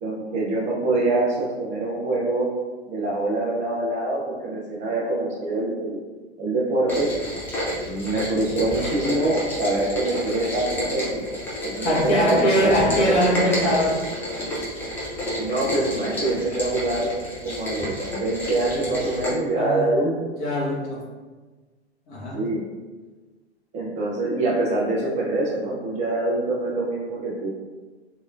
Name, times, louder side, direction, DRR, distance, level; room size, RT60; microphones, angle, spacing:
voice 1, 0.0-2.5 2.9-6.0 6.4-7.1 7.8-13.2 15.4-17.1 17.4-20.3 22.3-22.6 23.7-27.5, right 2 dB, 20° right, -4 dB, 0.8 m, -25 dB
Rain, 6.9-19.3, left 1 dB, 5° left, 0.4 m, -30 dB
voice 2, 11.8-14.0 19.5-19.9 20.4-21.0 22.1-22.4, equal, 30° left, -6 dB, 1.0 m, -22 dB
3.3 x 3.0 x 2.4 m, 1.3 s
figure-of-eight pair, 105°, 33 cm